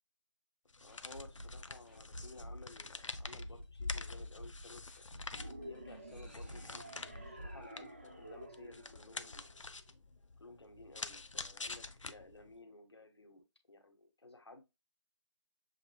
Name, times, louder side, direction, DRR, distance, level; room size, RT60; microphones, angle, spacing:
sound 1, 0.7-12.6, left 3 dB, 75° left, 0.6 m, -47 dB
voice 1, 0.8-5.1 5.6-9.5 10.4-14.6, left 2 dB, 55° left, 1.4 m, -56 dB
sound 2, 0.9-8.6 8.9-9.0 9.4-9.5, equal, 20° left, 0.8 m, -50 dB
sound 3, 5.3-9.8, right 1 dB, 20° right, 0.6 m, -52 dB
7.1 x 3.0 x 2.3 m
figure-of-eight pair, 170°, 16 cm